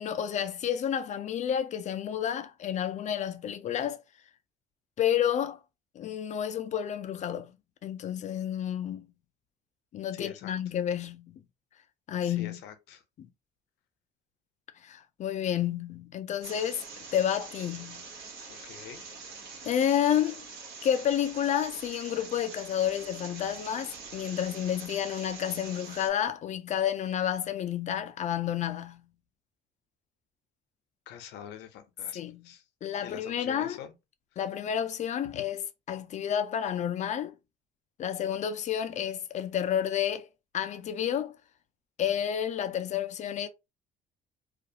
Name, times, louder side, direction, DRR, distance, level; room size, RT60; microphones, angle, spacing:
voice 1, 0.0-4.0 5.0-5.6 6.0-7.5 7.8-9.1 9.9-11.4 12.1-12.6 13.2-13.3 14.8-16.8 17.1-18.0 19.6-20.5 20.8-29.1 32.1-32.5 32.8-33.8 34.4-35.6 35.9-37.3 38.0-40.3 40.5-41.4 42.0-43.5, left 9 dB, 45° left, 0.4 m, -30 dB
voice 2, 10.1-10.5 12.2-13.0 18.6-19.0 31.1-32.6 33.0-33.9 35.3-35.4, left 10 dB, 85° left, 0.6 m, -44 dB
sound 1, 16.4-26.1, right 4 dB, 80° right, 1.0 m, -44 dB
2.4 x 2.3 x 2.7 m
cardioid pair, 110°, 17 cm